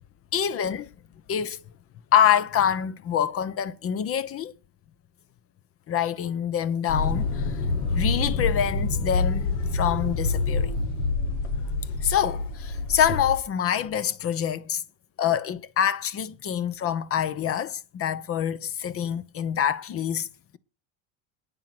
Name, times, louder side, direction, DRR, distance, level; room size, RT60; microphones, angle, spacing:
voice 1, 0.3-0.9 1.3-1.6 2.1-4.5 5.9-7.6 7.9-10.7 12.0-14.8 15.2-20.3, left 9 dB, 40° left, 1.0 m, -26 dB
sound 1, 6.9-13.4, left 3 dB, 85° left, 2.9 m, -27 dB
9.5 x 9.2 x 6.1 m
supercardioid pair, 110°, 36 cm